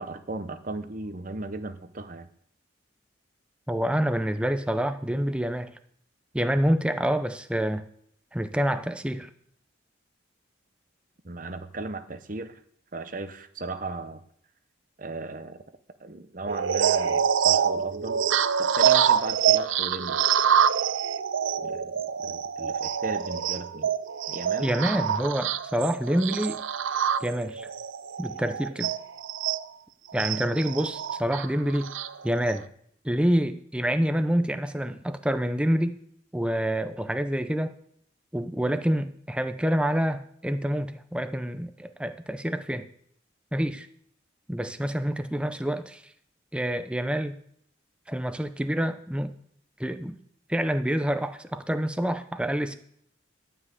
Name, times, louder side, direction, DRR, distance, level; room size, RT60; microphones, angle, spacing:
voice 1, 0.0-2.3 11.2-12.6 12.9-14.2 15.0-15.6 16.0-18.2 18.6-20.2 21.6-23.9 24.3-24.7, right 2 dB, 40° right, 10 dB, 0.9 m, -36 dB
voice 2, 3.7-5.7 6.3-7.8 8.3-9.3 24.6-26.6 27.2-27.7 28.2-28.9 30.1-31.9 32.2-32.6 33.0-36.0 36.3-37.7 38.3-42.9 43.5-43.9 44.5-46.0 46.5-47.4 48.1-49.3 49.8-50.2 50.5-52.7, equal, 5° right, 9 dB, 0.6 m, -27 dB
sound 1, 16.5-29.6 30.2-32.6, right 8 dB, 80° right, 0.5 m, -26 dB
12.0 x 5.6 x 8.2 m, 0.67 s
head